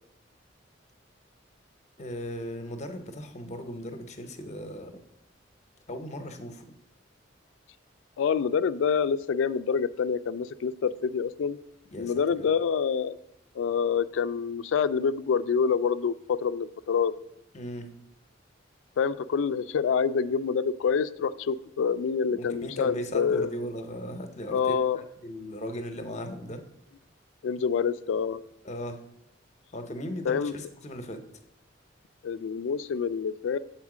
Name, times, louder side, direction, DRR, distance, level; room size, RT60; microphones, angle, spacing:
voice 1, 2.0-4.9 5.9-6.6 11.9-12.5 17.5-17.9 22.3-24.7 25.2-26.6 28.6-29.0 29.7-31.2, equal, 40° left, 7 dB, 0.7 m, -37 dB
voice 2, 8.2-11.6 12.0-13.2 13.6-17.1 19.0-23.5 24.5-25.0 27.4-28.4 30.3-30.6 32.2-33.6, left 6 dB, 80° left, 14 dB, 0.3 m, -27 dB
7.2 x 4.4 x 4.8 m, 0.81 s
head